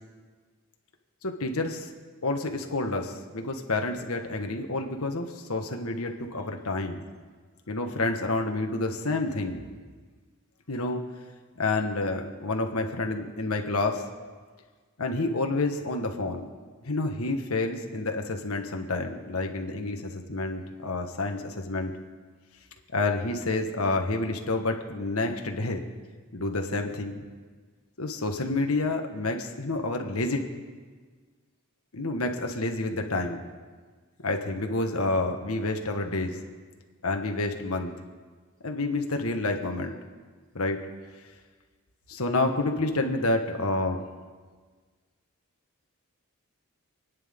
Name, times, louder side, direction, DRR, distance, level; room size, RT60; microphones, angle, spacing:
voice 1, 1.2-1.9 2.2-7.0 7.7-9.6 10.7-11.0 11.6-14.1 15.0-16.5 16.8-21.9 22.9-25.8 26.3-27.2 28.0-30.4 31.9-33.4 34.2-36.4 37.0-37.9 38.6-39.9 40.5-40.8 42.1-44.0, left 2 dB, 85° left, 4 dB, 1.5 m, -29 dB
28.0 x 9.9 x 3.7 m, 1.5 s
head